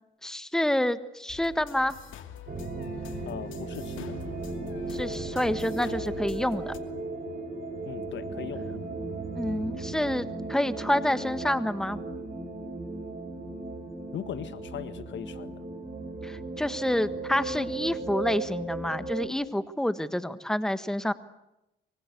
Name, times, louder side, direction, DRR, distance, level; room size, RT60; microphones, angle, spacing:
voice 1, 0.2-1.9 4.9-6.7 9.3-12.0 16.2-21.1, left 1 dB, 5° left, 13 dB, 1.5 m, -28 dB
sound 1, 1.3-6.8, left 8 dB, 85° left, 2.6 m, -45 dB
sound 2, 2.5-19.3, right 3 dB, 45° right, 7.5 m, -36 dB
voice 2, 3.3-4.1 7.8-8.8 14.1-15.6, left 9 dB, 70° left, 13 dB, 1.8 m, -39 dB
25.5 x 24.0 x 8.4 m, 0.89 s
cardioid pair, 90°, 20 cm